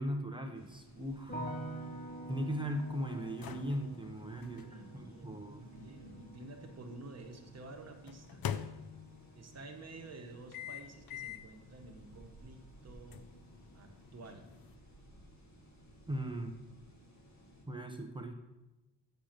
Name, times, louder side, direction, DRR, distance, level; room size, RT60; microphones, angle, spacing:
voice 1, 0.0-1.5 2.3-5.6 16.1-16.5 17.7-18.3, equal, 10° right, 4 dB, 0.7 m, -38 dB
sound 1, 0.5-17.6, equal, 40° left, 2.0 m, -59 dB
sound 2, 0.9-7.0 8.1-9.4 10.5-11.6 12.0-12.2 13.1-14.7, left 9 dB, 55° left, 0.5 m, -46 dB
sound 3, 1.3-12.4 12.6-13.4, right 1 dB, 20° left, 1.2 m, -49 dB
voice 2, 4.2-8.4 9.3-13.3 13.7-14.5, right 2 dB, 35° right, 3 dB, 1.2 m, -51 dB
6.7 x 6.6 x 7.4 m, 1.0 s
wide cardioid pair, 160°, 44 cm